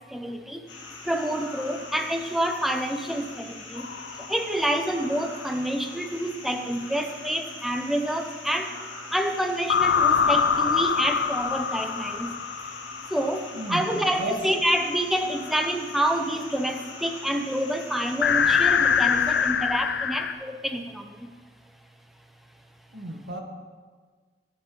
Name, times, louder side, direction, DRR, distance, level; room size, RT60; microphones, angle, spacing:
voice 1, 0.1-0.6 1.1-3.9 4.3-8.7 9.1-12.3 13.1-21.1, right 1 dB, ahead, 5 dB, 0.5 m, -27 dB
sound 1, 0.7-19.5, left 3 dB, 85° left, 1.8 m, -42 dB
sound 2, 3.8-4.6 9.7-13.4 18.2-20.3, left 6 dB, 65° left, 0.4 m, -24 dB
voice 2, 13.5-14.4 22.9-23.4, right 1 dB, 75° right, 1 dB, 1.4 m, -33 dB
10.0 x 9.0 x 3.8 m, 1.5 s
head